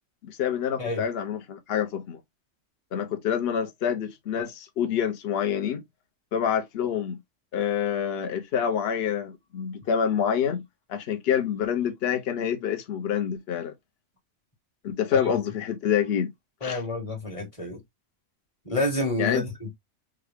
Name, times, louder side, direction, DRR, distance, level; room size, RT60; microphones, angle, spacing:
voice 1, 0.2-2.2 2.9-5.8 6.3-7.2 7.5-10.6 10.9-13.7 14.8-16.3 16.6-16.8 19.2-19.4, left 8 dB, 55° left, 0.9 m, -27 dB
voice 2, 16.6-17.8 18.6-19.7, left 1 dB, 25° left, 1.2 m, -29 dB
3.6 x 2.3 x 3.4 m
omnidirectional pair, 1.4 m